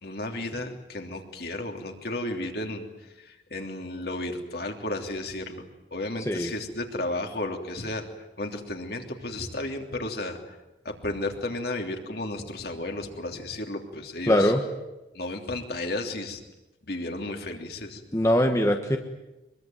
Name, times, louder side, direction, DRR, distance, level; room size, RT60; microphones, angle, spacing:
voice 1, 0.0-2.9 3.2-5.6 5.9-8.1 8.4-10.5 10.8-14.5 15.1-16.4 16.8-18.0, left 2 dB, 55° left, 3 dB, 3.1 m, -33 dB
voice 2, 14.3-14.6 18.1-19.0, left 1 dB, 15° left, 4 dB, 1.4 m, -22 dB
24.5 x 22.5 x 9.3 m, 1.0 s
head